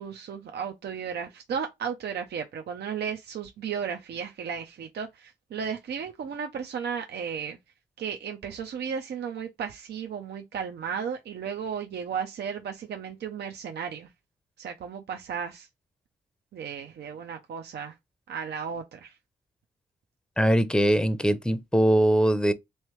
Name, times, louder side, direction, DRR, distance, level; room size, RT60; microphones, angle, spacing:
voice 1, 0.0-7.6 8.0-14.1 14.6-15.7 16.5-18.0 18.3-19.1, right 7 dB, 60° right, 0.6 m, -34 dB
voice 2, 20.4-22.5, right 1 dB, 5° left, 0.7 m, -21 dB
3.1 x 3.1 x 3.0 m
supercardioid pair, 45°, 19 cm